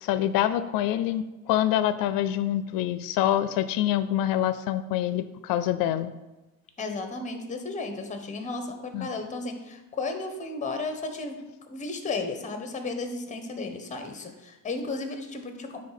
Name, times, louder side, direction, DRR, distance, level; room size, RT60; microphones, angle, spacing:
voice 1, 0.0-6.1 8.9-9.1, left 12 dB, 85° left, 13 dB, 0.5 m, -26 dB
voice 2, 6.8-11.4 11.7-15.8, left 3 dB, 20° left, 6 dB, 1.0 m, -34 dB
9.6 x 3.3 x 5.7 m, 1.1 s
cardioid pair, 130°, 33 cm